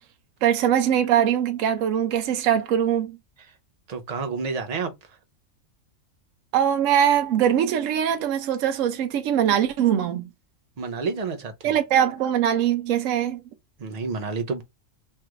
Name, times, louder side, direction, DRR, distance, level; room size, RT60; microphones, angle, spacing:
voice 1, 0.4-3.2 6.5-10.3 11.6-13.4, right 9 dB, 75° right, 1.0 m, -22 dB
voice 2, 3.9-4.9 10.8-11.7 13.8-14.6, right 4 dB, 45° right, 0.6 m, -29 dB
3.3 x 2.5 x 4.4 m
omnidirectional pair, 1.4 m